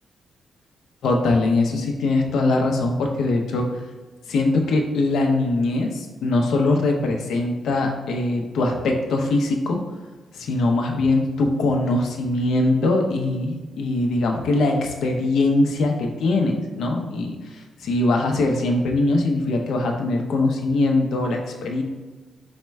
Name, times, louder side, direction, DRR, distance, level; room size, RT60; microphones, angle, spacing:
voice 1, 1.0-3.6 4.3-9.8 10.3-21.8, left 2 dB, 80° left, 3 dB, 0.6 m, -22 dB
4.2 x 2.1 x 4.5 m, 1.3 s
wide cardioid pair, 140°, 0 cm